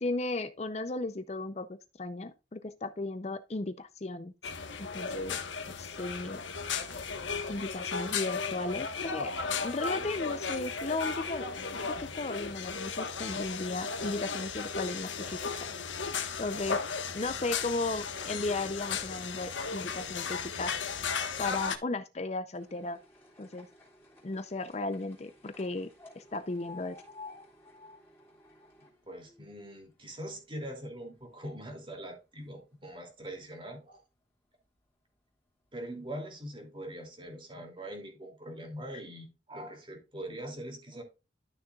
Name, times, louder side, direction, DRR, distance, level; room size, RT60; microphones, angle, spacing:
voice 1, 0.0-1.7 2.0-4.3 4.9-5.4 5.8-6.4 7.5-9.3 9.6-11.5 11.7-15.4 16.4-16.8 17.1-20.7 21.4-23.0 23.4-23.7 24.2-25.9 26.2-27.0, left 2 dB, 35° left, 0.5 m, -35 dB
sound 1, 4.4-21.8, left 5 dB, 80° left, 1.3 m, -35 dB
sound 2, 22.5-30.8 31.1-32.0 32.7-32.8 33.1-33.2 33.5-33.6 34.4-34.6 35.1-35.2 35.9-36.0 36.5-36.6, left 3 dB, 10° left, 3.5 m, -54 dB
voice 2, 28.8-34.0 35.7-41.0, right 1 dB, 25° right, 2.8 m, -42 dB
12.5 x 6.6 x 2.4 m
head